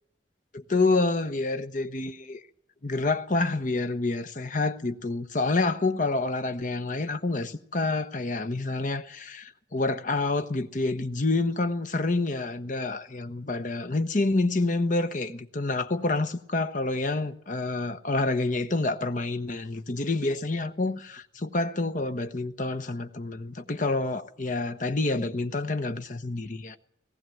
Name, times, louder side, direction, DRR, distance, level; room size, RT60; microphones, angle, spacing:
voice 1, 0.5-2.4 2.8-26.8, left 2 dB, 45° left, 1.1 m, -28 dB
18.5 x 15.0 x 9.2 m
head